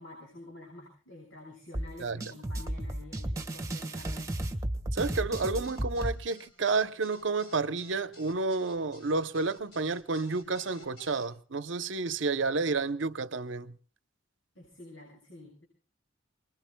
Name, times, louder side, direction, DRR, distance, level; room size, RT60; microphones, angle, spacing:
voice 1, 0.0-4.3 14.5-15.6, left 2 dB, 85° left, 7.3 m, -49 dB
sound 1, 1.7-6.1, right 1 dB, 15° right, 1.5 m, -34 dB
voice 2, 4.9-13.7, right 3 dB, 65° right, 0.8 m, -30 dB
sound 2, 5.3-11.3, left 1 dB, 55° left, 6.5 m, -53 dB
28.0 x 21.5 x 2.2 m
head